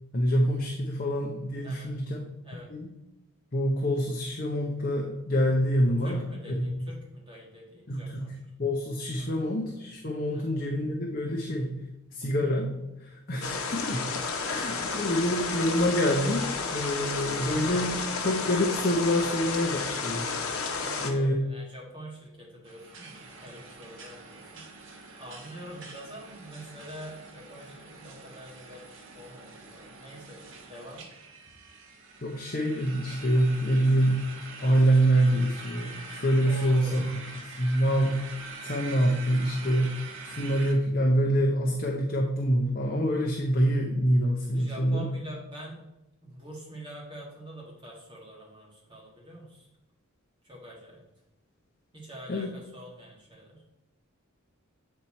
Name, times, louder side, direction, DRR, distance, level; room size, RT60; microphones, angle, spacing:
voice 1, 0.1-2.2 2.7-2.9 3.5-6.2 6.5-6.8 7.9-8.3 8.6-11.7 12.1-12.7 13.0-14.0 14.5-20.3 21.0-21.4 32.2-34.1 34.6-37.2 37.6-45.1 52.3-52.5, equal, 40° left, 1 dB, 0.7 m, -26 dB
voice 2, 1.6-2.0 2.4-2.7 6.0-8.3 9.2-9.4 10.3-10.5 13.5-13.7 19.2-19.3 20.8-24.9 25.1-31.0 36.4-37.0 44.5-45.8 46.2-49.7 50.4-51.0 51.9-53.7, equal, 20° right, -3 dB, 1.7 m, -45 dB
sound 1, 13.4-21.1, left 4 dB, 75° left, 1.0 m, -32 dB
sound 2, 22.6-40.7, right 4 dB, 60° right, 1.1 m, -45 dB
8.0 x 4.3 x 4.3 m, 0.91 s
head